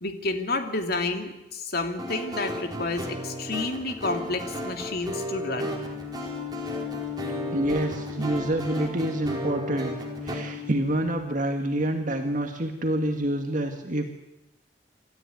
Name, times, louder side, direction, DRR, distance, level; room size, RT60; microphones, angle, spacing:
voice 1, 0.0-5.7, left 3 dB, 60° left, 5 dB, 2.7 m, -30 dB
sound 1, 2.0-10.3, right 1 dB, 25° right, 4.4 m, -34 dB
sound 2, 5.5-11.2, left 7 dB, 30° left, 5.4 m, -37 dB
voice 2, 7.5-9.9 10.2-14.1, right 1 dB, 50° right, 4 dB, 1.9 m, -27 dB
28.5 x 13.5 x 9.4 m, 0.96 s
head